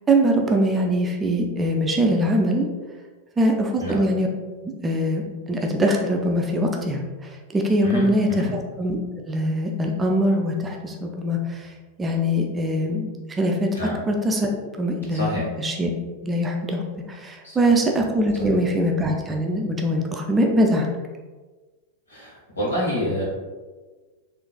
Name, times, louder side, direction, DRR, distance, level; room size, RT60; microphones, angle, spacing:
voice 1, 0.1-2.7 3.4-4.3 4.6-5.2 5.5-9.0 9.3-11.7 12.0-13.7 14.1-14.5 14.8-15.9 16.2-16.8 17.1-20.9, equal, 15° right, 1 dB, 0.4 m, -22 dB
voice 2, 7.8-8.5 13.7-13.9 15.1-15.5 17.4-17.6 18.3-18.5 22.1-23.2, left 1 dB, 75° left, -6 dB, 1.4 m, -28 dB
3.8 x 2.5 x 2.2 m, 1.3 s
figure-of-eight pair, 90°, 0 cm